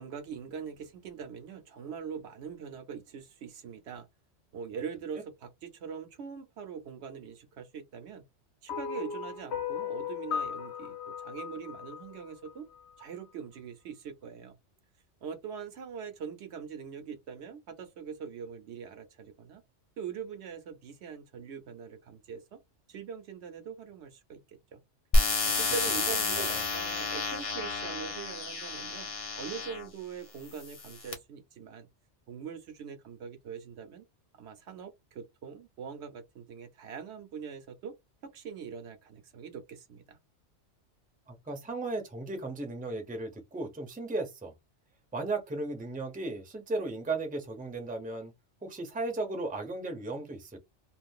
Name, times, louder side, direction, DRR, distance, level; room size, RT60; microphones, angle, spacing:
voice 1, 0.0-4.1 4.5-8.2 8.6-12.7 13.0-14.6 15.2-19.6 20.0-22.6 22.9-24.8 25.4-29.1 29.3-31.9 32.3-34.1 34.4-37.9 38.2-40.2, right 6 dB, 70° right, 0.9 m, -42 dB
sound 1, 8.7-13.0, left 7 dB, 70° left, 0.9 m, -37 dB
sound 2, 25.1-29.9 30.6-31.1, left 2 dB, 35° left, 0.6 m, -30 dB
voice 2, 26.3-26.6 41.3-44.5 45.1-48.3 48.6-50.6, right 2 dB, 10° right, 0.5 m, -35 dB
2.5 x 2.4 x 3.5 m
omnidirectional pair, 1.2 m